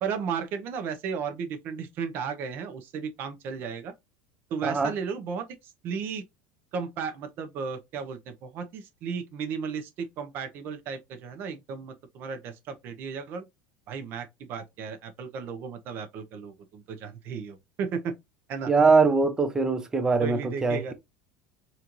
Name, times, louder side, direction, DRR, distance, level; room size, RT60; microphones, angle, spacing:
voice 1, 0.0-3.9 4.5-5.4 5.8-6.2 6.7-13.5 13.9-18.1 18.5-18.7 20.2-20.9, right 6 dB, 45° right, 0.8 m, -34 dB
voice 2, 18.7-20.9, right 4 dB, 10° right, 0.6 m, -22 dB
4.3 x 2.6 x 2.9 m
supercardioid pair, 145°, 5 cm